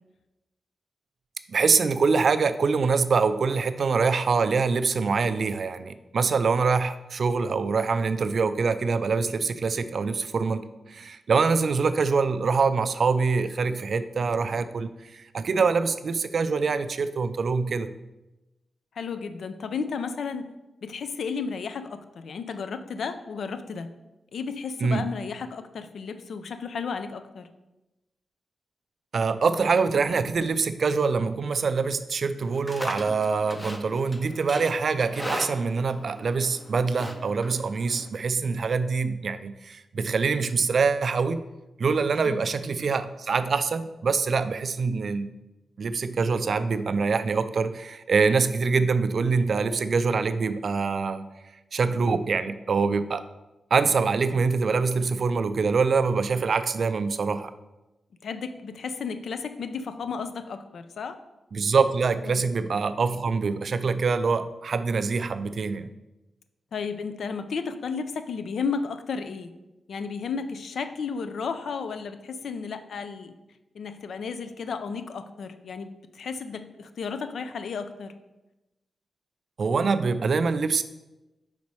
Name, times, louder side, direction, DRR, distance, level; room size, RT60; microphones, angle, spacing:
voice 1, 1.5-10.6 10.9-17.9 24.8-25.0 29.1-41.4 41.8-45.3 45.8-51.3 51.7-53.2 53.7-57.5 61.5-65.9 79.6-80.8, right 4 dB, 55° right, 11 dB, 0.3 m, -24 dB
voice 2, 19.0-20.5 20.8-23.9 24.3-27.5 42.3-42.5 58.2-61.1 62.2-62.4 66.7-69.5 69.9-73.3 73.7-75.9 76.1-78.1, left 5 dB, 70° left, 10 dB, 0.4 m, -33 dB
Livestock farm animals working animals, 32.4-38.1, left 1 dB, 15° left, 0.5 m, -38 dB
5.1 x 4.1 x 4.7 m, 1.0 s
wide cardioid pair, 115°, 0 cm